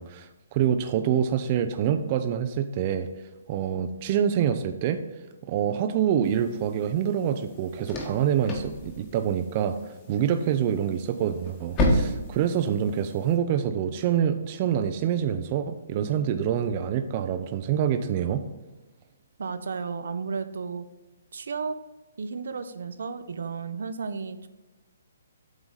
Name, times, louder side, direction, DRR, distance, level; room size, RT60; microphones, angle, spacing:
voice 1, 0.0-3.1 3.5-5.0 5.5-18.4, right 9 dB, 35° right, 8 dB, 0.5 m, -26 dB
sound 1, 6.2-13.4, equal, 25° left, 1.5 m, -32 dB
voice 2, 19.4-20.8 21.3-21.7 22.2-24.5, right 5 dB, 70° right, 10 dB, 0.7 m, -33 dB
8.0 x 3.9 x 5.6 m, 1.1 s
hypercardioid pair, 155°, 0 cm